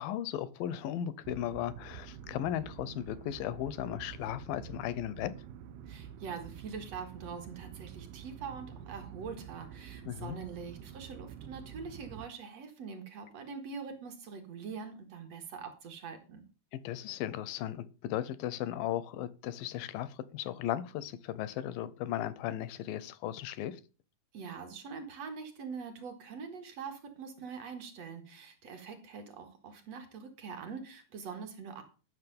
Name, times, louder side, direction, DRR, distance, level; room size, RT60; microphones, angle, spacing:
voice 1, 0.0-5.3 10.1-10.4 16.7-23.8, left 11 dB, 80° left, 2.3 m, -36 dB
sound 1, 1.2-12.3, right 8 dB, 85° right, 2.7 m, -48 dB
voice 2, 5.9-16.4 24.3-31.8, right 5 dB, 50° right, 2.3 m, -44 dB
12.5 x 6.6 x 5.2 m
omnidirectional pair, 4.4 m